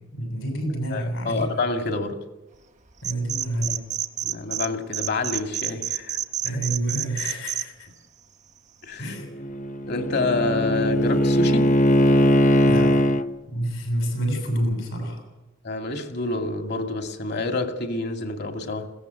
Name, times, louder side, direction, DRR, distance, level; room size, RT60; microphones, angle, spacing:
voice 1, 0.1-1.5 3.0-3.8 6.4-7.9 9.0-9.3 12.6-13.0 13.5-15.2, right 1 dB, 85° left, 7.5 m, -28 dB
voice 2, 0.9-2.2 4.2-6.2 8.8-9.1 9.9-11.8 15.6-18.9, left 3 dB, 55° left, 2.4 m, -28 dB
sound 1, 3.0-4.7 4.9-7.6, right 10 dB, 35° right, 0.8 m, -28 dB
Bowed string instrument, 9.2-13.2, equal, 40° left, 0.8 m, -20 dB
21.0 x 17.0 x 8.0 m
head